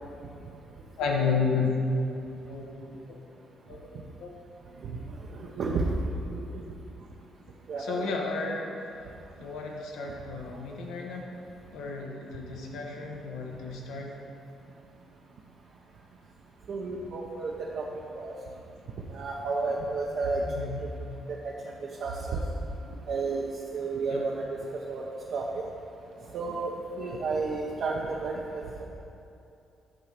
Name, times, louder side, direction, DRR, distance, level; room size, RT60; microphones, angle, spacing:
voice 1, 1.0-1.8 2.5-3.2 3.7-3.9 4.2-4.3 7.8-8.8 9.4-11.3 11.7-14.1 20.4-20.8 24.1-24.2, left 5 dB, 85° left, 0 dB, 1.0 m, -32 dB
voice 2, 5.4-5.9 6.3-6.5 7.7-8.1 16.7-17.8 18.2-18.3 19.1-20.4 20.8-20.9 21.4-21.5 22.0-22.4 23.1-24.6 24.9-25.0 25.3-25.6 26.3-26.7 27.0-28.8, right 4 dB, 65° right, -2 dB, 0.7 m, -31 dB
8.6 x 3.2 x 6.6 m, 2.7 s
cardioid pair, 90°, 0 cm